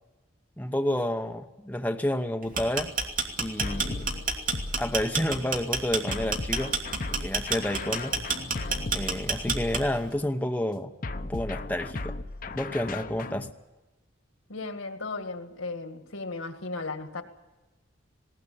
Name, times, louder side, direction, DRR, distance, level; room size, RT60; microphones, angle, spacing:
voice 1, 0.6-2.9 3.4-4.1 4.8-6.8 7.2-8.2 8.9-10.9 11.2-12.1 12.5-13.5, left 1 dB, 10° left, 5 dB, 0.8 m, -30 dB
sound 1, 2.4-10.1, right 4 dB, 40° right, 2.6 m, -29 dB
sound 2, 3.6-5.3 6.1-10.3 11.0-13.5, left 2 dB, 45° left, 0.8 m, -36 dB
voice 2, 14.5-17.2, left 3 dB, 85° left, 7 dB, 1.9 m, -35 dB
20.0 x 18.0 x 8.5 m, 1.1 s
head